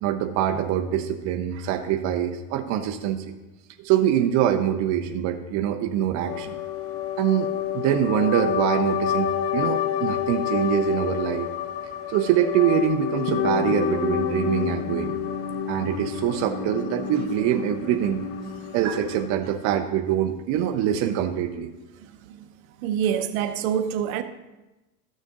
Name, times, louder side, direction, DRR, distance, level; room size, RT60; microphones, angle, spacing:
voice 1, 0.0-3.3 3.8-6.6 7.2-7.5 7.7-11.5 12.1-15.1 15.7-18.2 18.7-21.7, right 10 dB, 40° right, 0.7 m, -24 dB
sound 1, 6.3-19.3, left 9 dB, 30° left, 0.7 m, -28 dB
voice 2, 22.8-24.2, right 9 dB, 65° right, 0.9 m, -25 dB
13.0 x 6.5 x 3.8 m
supercardioid pair, 130°, 45 cm